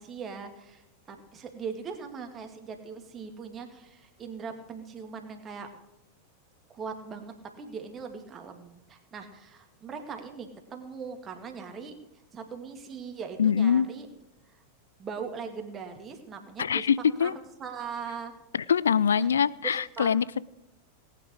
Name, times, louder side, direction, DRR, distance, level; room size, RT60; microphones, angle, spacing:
voice 1, 0.0-5.7 6.7-12.0 12.3-14.1 14.5-14.6 15.0-16.9 17.2-17.3 17.6-18.3 19.2-19.3 19.6-20.2, right 5 dB, 25° right, 5 dB, 2.3 m, -40 dB
voice 2, 13.4-13.9 16.6-17.3 18.5-20.4, left 7 dB, 70° left, 21 dB, 0.4 m, -24 dB
19.5 x 9.1 x 4.8 m, 0.91 s
figure-of-eight pair, 90°, 0 cm